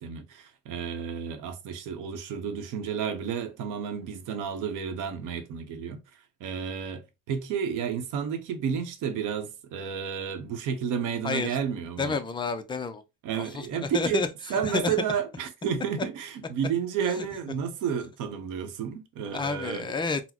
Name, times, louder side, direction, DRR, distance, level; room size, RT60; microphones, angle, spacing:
voice 1, 0.0-6.0 6.4-12.2 13.2-14.2 14.5-19.9, right 7 dB, 80° right, 0.8 m, -31 dB
voice 2, 11.2-11.6 12.0-13.0 13.3-15.2 17.2-17.3 19.3-20.2, left 4 dB, 15° left, 0.3 m, -30 dB
4.0 x 2.0 x 2.9 m
cardioid pair, 135°, 31 cm